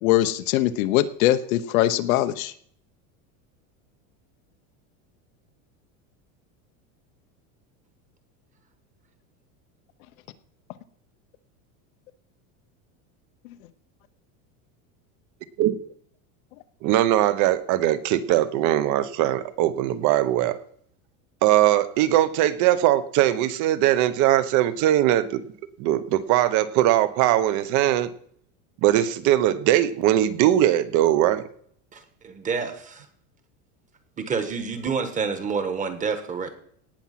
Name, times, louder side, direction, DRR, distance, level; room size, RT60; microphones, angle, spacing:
voice 1, 0.0-2.5, left 13 dB, 90° left, 10 dB, 1.0 m, -22 dB
voice 2, 16.8-20.6 21.4-25.4 25.8-28.1 28.8-31.4, right 13 dB, 45° right, 14 dB, 1.0 m, -20 dB
voice 3, 31.9-33.0 34.2-36.5, right 5 dB, 20° right, 8 dB, 1.4 m, -28 dB
18.0 x 6.0 x 5.9 m, 0.62 s
supercardioid pair, 160°, 41 cm